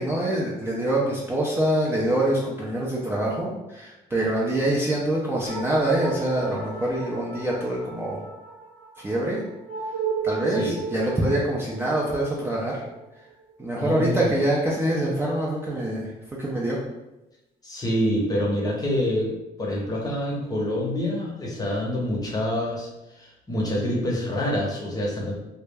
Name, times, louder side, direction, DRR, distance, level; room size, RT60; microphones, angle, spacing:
voice 1, 0.0-8.2 9.0-9.4 10.2-12.8 13.6-16.1 16.4-16.8, right 1 dB, 15° right, -4 dB, 0.4 m, -25 dB
sound 1, 5.4-14.2, right 5 dB, 85° right, 0.8 m, -35 dB
voice 2, 10.5-10.8 13.8-14.3 17.6-25.3, left 1 dB, 20° left, -3 dB, 0.7 m, -27 dB
2.2 x 2.0 x 3.3 m, 0.96 s
cardioid pair, 110°, 17 cm